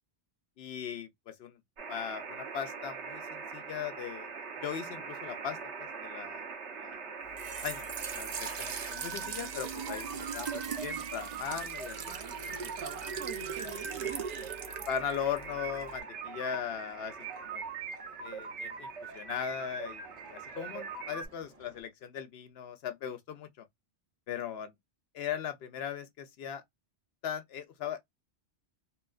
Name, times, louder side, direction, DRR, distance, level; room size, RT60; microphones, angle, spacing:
voice 1, 0.6-1.6 1.9-6.4 6.7-7.1 7.6-7.9 8.1-12.1 14.0-14.2 14.9-17.6 18.2-23.7 24.3-24.7 25.1-26.6 27.2-28.0, left 8 dB, 70° left, 0.8 m, -39 dB
sound 1, 1.8-21.3, right 5 dB, 90° right, 1.1 m, -42 dB
Trickle dribble / Fill (with liquid), 7.2-16.0, right 6 dB, 55° right, 0.4 m, -40 dB
voice 2, 12.1-14.7, right 9 dB, 75° right, 0.9 m, -46 dB
sound 2, 12.4-21.8, right 2 dB, 35° right, 0.9 m, -56 dB
2.9 x 2.3 x 2.3 m
omnidirectional pair, 1.1 m